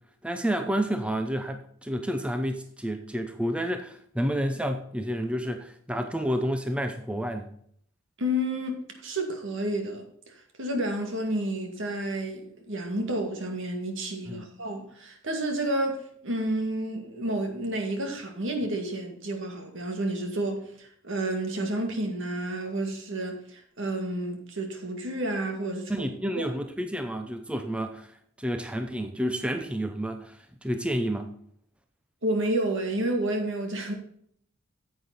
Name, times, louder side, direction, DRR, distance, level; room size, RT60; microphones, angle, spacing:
voice 1, 0.2-7.5 14.3-14.5 25.9-28.1 28.4-31.3, equal, 5° right, 0.6 m, -30 dB
voice 2, 8.2-26.1 26.3-26.4 32.2-33.9, right 1 dB, 65° right, 2.2 m, -30 dB
9.9 x 7.9 x 4.1 m
head